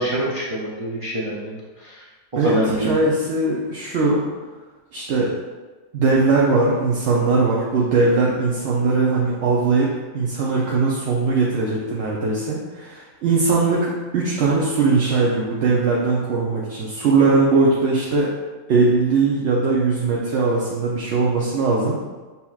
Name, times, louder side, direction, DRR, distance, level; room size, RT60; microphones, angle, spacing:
voice 1, 0.0-2.0 2.3-2.9, right 1 dB, 50° right, -5 dB, 0.4 m, -25 dB
voice 2, 2.4-4.2 4.9-5.4 5.9-9.9 10.1-18.3 18.7-22.0, right 3 dB, 65° right, -5 dB, 0.9 m, -20 dB
6.8 x 2.9 x 2.3 m, 1.3 s
omnidirectional pair, 1.4 m